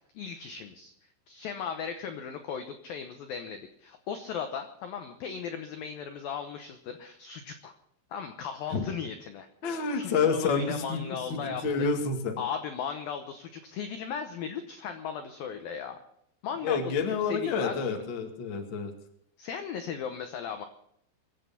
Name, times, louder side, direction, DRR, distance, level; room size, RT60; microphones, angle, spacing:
voice 1, 0.2-0.9 1.3-7.7 8.1-11.9 12.4-16.0 16.4-18.0 19.4-20.7, left 7 dB, 80° left, 7 dB, 2.0 m, -37 dB
voice 2, 9.6-11.0 11.3-12.4 16.6-18.9, left 5 dB, 50° left, 3 dB, 1.3 m, -29 dB
23.5 x 8.3 x 6.9 m, 0.73 s
omnidirectional pair, 5.6 m